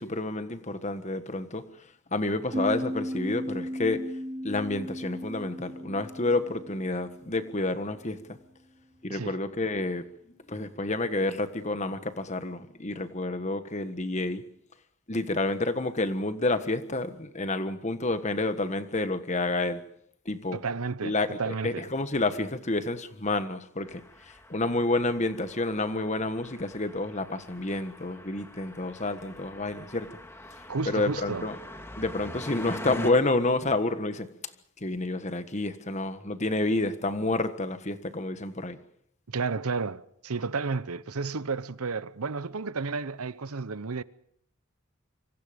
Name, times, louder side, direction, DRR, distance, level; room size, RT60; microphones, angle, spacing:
voice 1, 0.0-1.6 2.1-4.0 4.4-8.2 9.0-10.0 10.5-14.4 15.1-19.8 20.2-20.6 21.0-24.0 24.5-30.1 30.9-31.6 32.0-34.3 34.8-38.8, left 2 dB, 30° left, 1.5 m, -29 dB
sound 1, 2.5-7.9, equal, 20° right, 5.4 m, -36 dB
voice 2, 20.5-21.9 30.7-31.5 39.3-44.0, right 4 dB, 90° right, 0.9 m, -32 dB
sound 2, 23.8-33.1, left 1 dB, 10° left, 2.3 m, -43 dB
26.5 x 25.0 x 5.2 m
head